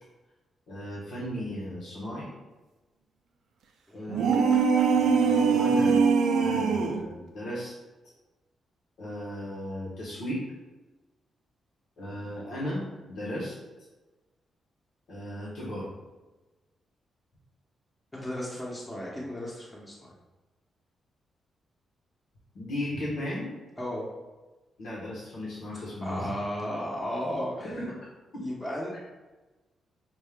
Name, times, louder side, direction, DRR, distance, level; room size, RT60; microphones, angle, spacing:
voice 1, 0.7-2.3 3.9-4.6 4.9-6.0 6.4-7.7 9.0-10.4 12.0-13.5 15.1-15.9 22.5-23.5 24.8-26.4 27.6-27.8 28.3-28.4 28.9-29.0, left 1 dB, 80° left, -7 dB, 1.2 m, -36 dB
voice 2, 3.9-4.5 18.1-20.1 23.8-24.1 26.0-27.8 28.4-29.0, equal, 15° left, -5 dB, 0.9 m, -35 dB
sound 1, 4.1-7.1, right 5 dB, 90° right, 0.5 m, -22 dB
5.3 x 2.5 x 3.5 m, 1.1 s
cardioid pair, 120°, 0 cm